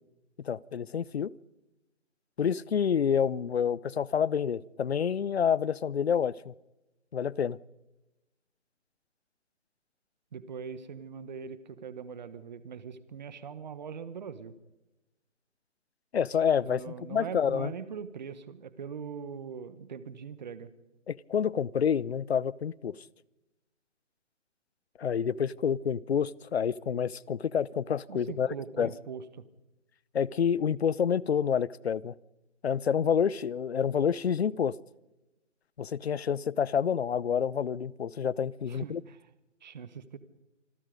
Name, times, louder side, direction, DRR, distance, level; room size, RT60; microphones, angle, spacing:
voice 1, 0.4-1.3 2.4-6.5 7.1-7.6 16.1-17.7 21.1-23.0 25.0-28.9 30.1-32.1 32.6-34.7 35.8-39.0, left 7 dB, 60° left, 24 dB, 0.7 m, -28 dB
voice 2, 10.3-14.5 16.6-20.7 28.1-29.2 38.7-39.2 39.6-40.2, right 6 dB, 35° right, 15 dB, 1.3 m, -41 dB
26.5 x 21.0 x 5.2 m, 0.98 s
hypercardioid pair, 165°, 37 cm